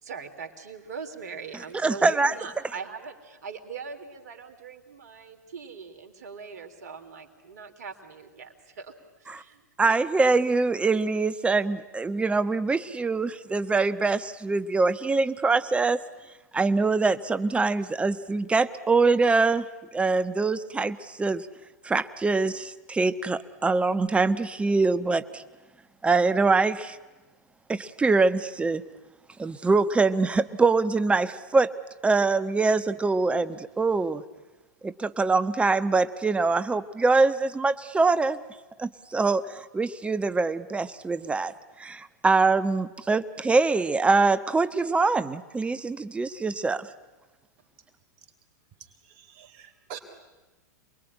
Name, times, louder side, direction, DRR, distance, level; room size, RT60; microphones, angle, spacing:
voice 1, 0.0-8.9 9.2-10.0, right 5 dB, 70° right, 6 dB, 3.3 m, -41 dB
voice 2, 1.8-2.3 9.3-9.4 9.8-16.0 16.5-19.7 19.9-21.5 21.8-25.4 26.0-27.0 27.7-28.8 29.4-31.7 32.0-34.2 34.8-38.4 38.8-41.5 41.8-46.9, right 3 dB, 10° right, 13 dB, 1.1 m, -24 dB
voice 3, 49.2-50.0, right 9 dB, 50° right, 6 dB, 3.7 m, -44 dB
28.0 x 21.5 x 9.9 m, 1.2 s
hypercardioid pair, 105°, 10 cm